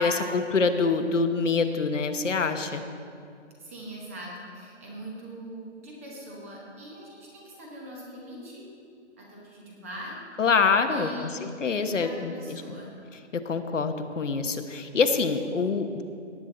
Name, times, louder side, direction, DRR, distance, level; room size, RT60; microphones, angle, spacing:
voice 1, 0.0-2.8 10.4-11.3 11.6-12.3 13.4-16.0, left 4 dB, 85° left, 7 dB, 1.1 m, -25 dB
voice 2, 3.6-8.6 9.2-10.2 10.9-12.9, equal, 10° right, -3 dB, 1.0 m, -42 dB
17.5 x 8.5 x 3.9 m, 2.4 s
hypercardioid pair, 170°, 36 cm